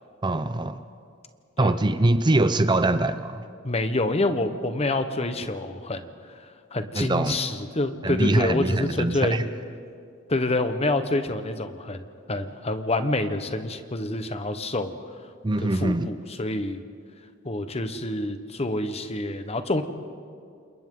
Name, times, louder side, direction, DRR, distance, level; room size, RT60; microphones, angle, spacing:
voice 1, 0.2-0.8 1.6-3.4 6.9-7.4 8.0-9.5 15.4-16.1, right 2 dB, 25° right, 11 dB, 0.6 m, -23 dB
voice 2, 3.6-6.0 6.7-9.4 10.3-14.9 15.6-16.8 17.4-19.8, left 2 dB, 30° left, 9 dB, 1.1 m, -27 dB
29.0 x 27.5 x 3.8 m, 2.2 s
head